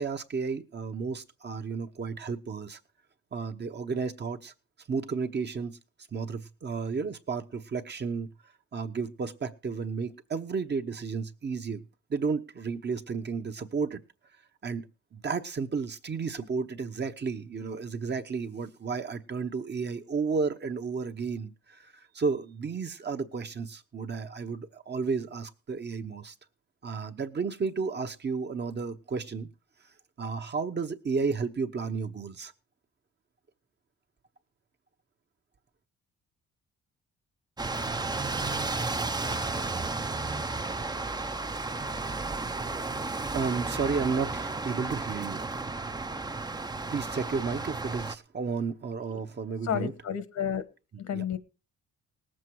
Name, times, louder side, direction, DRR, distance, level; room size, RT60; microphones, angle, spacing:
voice 1, 0.0-2.8 3.3-4.5 4.9-5.8 6.1-8.3 8.7-11.8 12.1-14.0 14.6-14.9 15.1-26.3 26.8-29.5 30.2-32.5 43.3-45.5 46.9-49.9 51.1-51.2, right 5 dB, 35° right, 0.9 m, -32 dB
sound 1, 37.6-48.2, right 3 dB, 15° right, 0.6 m, -33 dB
voice 2, 49.6-50.6 51.0-51.4, left 8 dB, 65° left, 1.3 m, -31 dB
18.5 x 7.5 x 4.7 m
cardioid pair, 90°, 30 cm